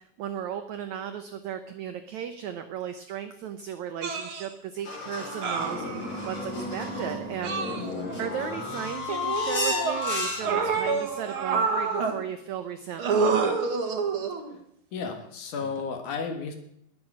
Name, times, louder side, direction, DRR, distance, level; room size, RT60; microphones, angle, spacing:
voice 1, 0.0-7.8 8.2-13.4, right 9 dB, 80° right, 9 dB, 1.6 m, -36 dB
sound 1, 4.0-4.4 5.4-6.3 7.4-8.3 9.1-10.0 10.4-12.2 13.0-14.5 15.6-15.8, right 5 dB, 50° right, 1.8 m, -28 dB
sound 2, 4.9-10.7, left 2 dB, 35° left, 4.0 m, -32 dB
voice 2, 14.9-16.5, left 5 dB, 60° left, 5 dB, 2.8 m, -33 dB
21.0 x 7.7 x 6.2 m, 0.74 s
omnidirectional pair, 4.2 m